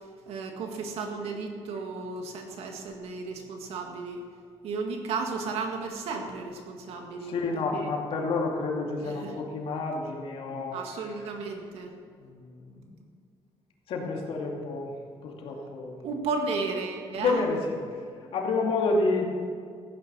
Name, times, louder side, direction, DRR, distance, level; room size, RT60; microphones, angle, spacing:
voice 1, 0.3-4.2 4.6-7.4 7.7-7.9 9.0-9.4 10.4-11.9 16.0-17.5, right 4 dB, 80° right, 3 dB, 2.0 m, -34 dB
voice 2, 7.2-11.1 12.2-12.8 13.9-14.9 15.2-16.0 17.1-17.6 18.3-19.3, left 3 dB, 65° left, 0 dB, 2.6 m, -29 dB
15.0 x 9.6 x 6.2 m, 2.2 s
cardioid pair, 125°, 10 cm